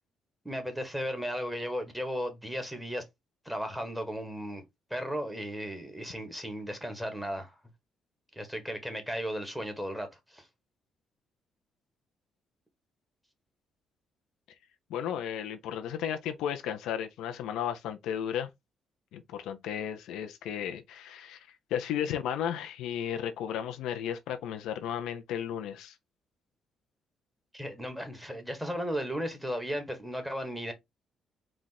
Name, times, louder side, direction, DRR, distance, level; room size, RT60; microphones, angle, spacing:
voice 1, 0.4-3.0 3.4-4.6 4.9-7.5 8.3-10.5 27.5-30.7, equal, 5° right, 1.6 m, -35 dB
voice 2, 14.9-18.5 19.1-21.4 21.7-26.0, left 9 dB, 90° left, 0.7 m, -34 dB
4.5 x 2.5 x 4.1 m
cardioid pair, 90°, 0 cm